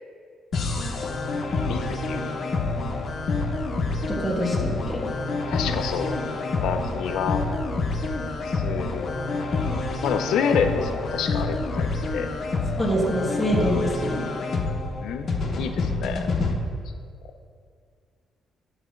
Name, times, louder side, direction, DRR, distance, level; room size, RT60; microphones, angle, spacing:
sound 1, 0.5-16.5, left 3 dB, 55° left, 0.9 m, -27 dB
voice 1, 1.7-2.3 5.5-6.2 6.6-7.4 8.5-9.1 10.0-12.3 15.0-16.3, left 7 dB, 85° left, 7 dB, 0.6 m, -28 dB
voice 2, 4.1-5.1 12.8-14.2, equal, 5° left, -4 dB, 1.4 m, -25 dB
8.1 x 4.1 x 6.4 m, 2.1 s
cardioid pair, 90°, 0 cm